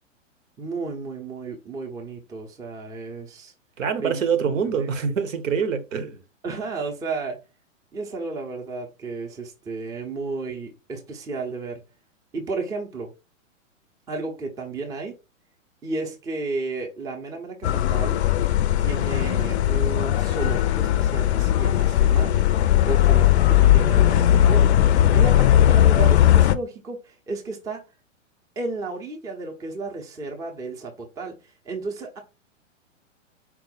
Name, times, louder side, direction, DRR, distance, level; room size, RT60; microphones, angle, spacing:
voice 1, 0.6-3.5 4.0-4.2 4.6-4.7 6.4-7.4 7.9-11.8 12.3-13.1 14.1-15.1 15.8-18.2 18.8-22.3 22.9-24.7 25.0-27.8 28.6-32.2, right 3 dB, 10° right, 0.5 m, -33 dB
voice 2, 3.8-6.2, right 6 dB, 70° right, 0.9 m, -25 dB
sound 1, 17.6-26.5, left 12 dB, 55° left, 0.5 m, -18 dB
4.5 x 2.0 x 3.9 m
hypercardioid pair, 115°, 39 cm